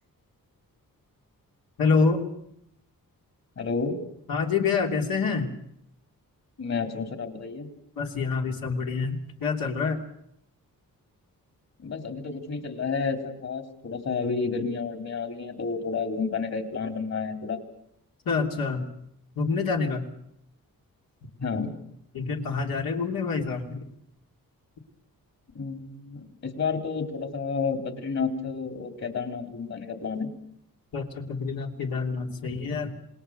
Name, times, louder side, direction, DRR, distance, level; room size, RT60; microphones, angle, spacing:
voice 1, 1.8-2.2 4.3-5.5 8.0-10.0 18.2-18.9 19.3-20.1 22.1-23.9 30.9-32.9, left 4 dB, 75° left, 1 dB, 3.2 m, -27 dB
voice 2, 3.6-4.0 6.6-7.7 11.8-17.6 21.4-21.7 25.6-30.3, left 5 dB, 50° left, 5 dB, 3.7 m, -30 dB
27.0 x 20.0 x 6.7 m, 0.75 s
cardioid pair, 95°, 35 cm